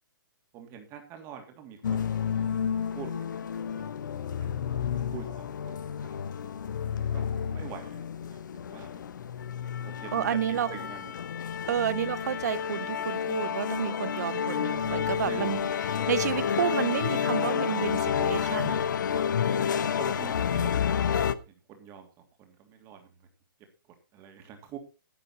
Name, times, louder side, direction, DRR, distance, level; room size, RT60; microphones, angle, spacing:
voice 1, 0.5-2.5 2.7-4.3 5.1-6.2 6.9-9.0 9.8-11.1 15.3-15.4 19.1-19.7 20.0-22.1 22.4-23.3 24.1-24.8, right 7 dB, 25° right, 3.0 m, -45 dB
sound 1, 1.8-21.3, left 8 dB, 60° left, 0.9 m, -30 dB
voice 2, 10.1-10.7 11.7-15.7 16.1-18.8, right 10 dB, 50° right, 0.6 m, -30 dB
11.5 x 10.5 x 4.3 m
figure-of-eight pair, 130°, 12 cm